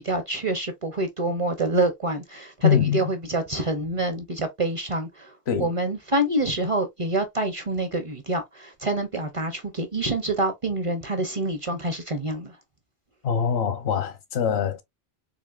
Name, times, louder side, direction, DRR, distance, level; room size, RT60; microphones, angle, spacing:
voice 1, 0.0-5.3 5.6-12.5, right 2 dB, 40° right, 0.6 m, -26 dB
voice 2, 2.6-3.1 5.5-5.7 13.2-14.8, left 8 dB, 80° left, 1.0 m, -23 dB
4.0 x 2.9 x 2.3 m
omnidirectional pair, 1.1 m